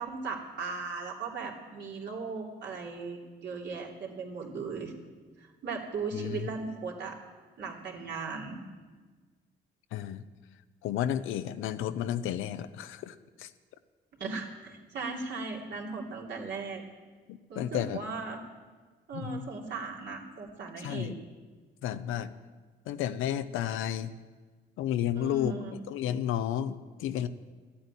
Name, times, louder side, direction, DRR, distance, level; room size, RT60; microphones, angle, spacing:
voice 1, 0.0-4.9 5.4-7.2 7.6-8.6 14.2-16.8 17.5-18.4 19.1-21.1 25.1-25.7, right 4 dB, 60° right, -2 dB, 3.0 m, -37 dB
voice 2, 6.1-6.5 9.9-10.2 10.8-13.5 17.3-18.0 19.1-19.4 20.8-21.2 21.8-22.3 22.9-24.1 24.8-25.5 25.9-27.3, left 11 dB, 90° left, 12 dB, 0.7 m, -32 dB
13.0 x 8.7 x 9.7 m, 1.4 s
cardioid pair, 90°, 20 cm